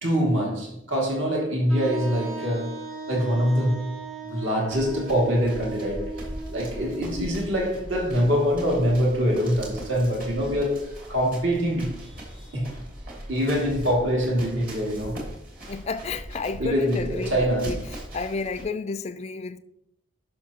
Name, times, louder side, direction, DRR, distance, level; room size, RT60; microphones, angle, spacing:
voice 1, 0.0-2.8 3.1-4.0 4.3-6.2 6.5-11.9 12.5-12.8 13.3-15.2 16.6-17.8, equal, 60° right, 2.3 m, -24 dB
Wind instrument woodwind instrument, 1.7-7.5, right 3 dB, 80° right, 2.1 m, -37 dB
sound 1, 4.7-18.6, equal, 40° right, 2.5 m, -39 dB
voice 2, 15.7-17.8 18.1-19.6, left 4 dB, 30° left, 0.4 m, -31 dB
11.0 x 5.8 x 2.9 m
head